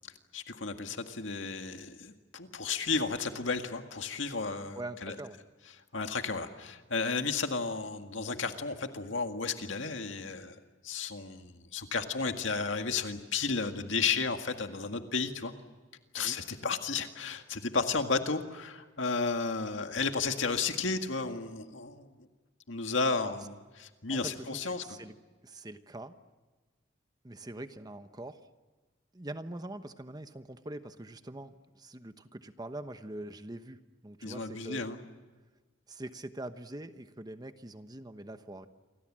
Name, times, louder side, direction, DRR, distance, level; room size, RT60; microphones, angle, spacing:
voice 1, 0.3-5.1 5.9-10.6 10.8-15.5 16.1-22.1 22.7-23.5 23.8-24.8 34.2-35.0, left 4 dB, 85° left, 6 dB, 1.9 m, -33 dB
voice 2, 4.7-5.4 16.2-16.4 23.2-23.3 24.1-25.1 25.4-26.1 27.2-28.4 29.1-34.9 35.9-38.7, right 1 dB, 20° right, 9 dB, 1.0 m, -43 dB
28.5 x 24.5 x 7.5 m, 1.3 s
head